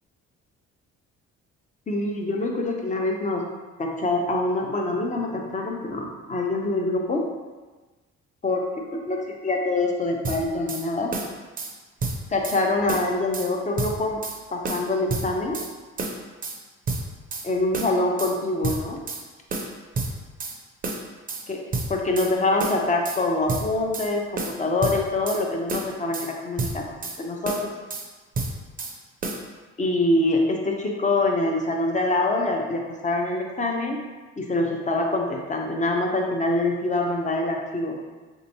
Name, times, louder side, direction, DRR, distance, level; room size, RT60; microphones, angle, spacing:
voice 1, 1.9-3.5 3.8-7.3 8.4-8.6 8.9-11.1 12.3-14.2 14.5-15.6 17.4-19.0 21.5-21.6 21.9-26.8 27.2-27.7 29.8-34.0 34.4-38.0, left 2 dB, 25° left, 1 dB, 0.6 m, -25 dB
sound 1, 10.2-10.8 11.1-11.7 12.0-12.6 12.9-13.5 13.8-14.4 14.6-15.7 16.0-16.6 16.9-17.5 17.7-18.3 18.6-19.2 19.5-20.6 20.8-21.4 21.7-22.3 22.6-23.2 23.5-24.1 24.4-25.4 25.7-26.3 26.6-27.2 27.4-28.1 28.3-28.9 29.2-29.4, right 3 dB, 30° right, 0.5 m, -30 dB
3.4 x 2.9 x 2.7 m, 1.3 s
cardioid pair, 90°, 30 cm